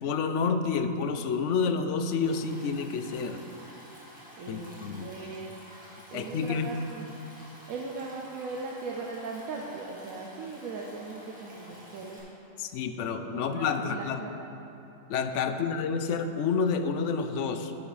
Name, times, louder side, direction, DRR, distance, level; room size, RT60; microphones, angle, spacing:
voice 1, 0.0-3.4 4.5-5.1 6.1-6.7 12.6-14.2 15.1-17.7, left 5 dB, 70° left, 8 dB, 0.8 m, -29 dB
Stream, 2.2-12.2, equal, 5° right, 2.0 m, -50 dB
voice 2, 4.4-5.5 6.1-7.1 7.7-12.2 13.0-14.3 15.5-15.6, right 3 dB, 90° right, -1 dB, 1.2 m, -39 dB
9.5 x 8.9 x 4.1 m, 3.0 s
omnidirectional pair, 1.4 m